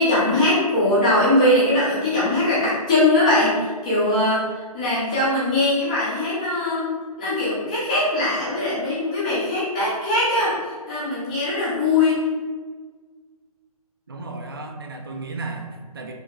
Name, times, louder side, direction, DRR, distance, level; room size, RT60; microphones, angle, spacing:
voice 1, 0.0-6.9 7.2-10.6 10.9-12.2, left 1 dB, 10° left, -9 dB, 0.6 m, -21 dB
voice 2, 14.1-16.1, right 3 dB, 35° right, 3 dB, 0.4 m, -34 dB
3.3 x 3.2 x 3.6 m, 1.5 s
hypercardioid pair, 175°, 20 cm